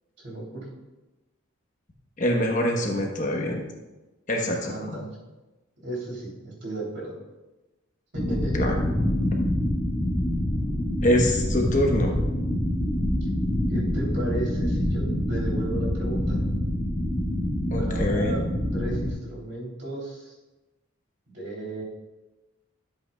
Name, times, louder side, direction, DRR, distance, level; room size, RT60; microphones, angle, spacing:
voice 1, 0.2-0.7 4.6-5.1 5.8-7.1 8.1-8.6 13.7-16.4 17.8-18.4 18.7-20.3 21.3-21.8, right 1 dB, 55° right, -4 dB, 3.2 m, -34 dB
voice 2, 2.2-3.6 4.3-5.0 8.5-8.8 11.0-12.2 17.7-18.3, left 1 dB, 35° left, 1 dB, 1.0 m, -24 dB
sound 1, 8.1-19.1, left 1 dB, 5° left, 1.5 m, -26 dB
12.0 x 7.8 x 2.3 m, 1.1 s
head